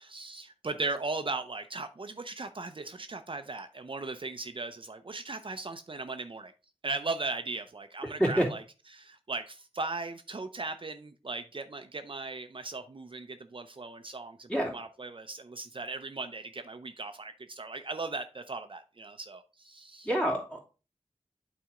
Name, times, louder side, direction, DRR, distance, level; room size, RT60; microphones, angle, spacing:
voice 1, 0.0-6.5 6.8-8.6 8.9-20.1, right 3 dB, 50° right, 0.6 m, -38 dB
voice 2, 20.0-20.7, equal, 10° left, 2.6 m, -27 dB
8.7 x 4.2 x 3.7 m
wide cardioid pair, 55°, 11 cm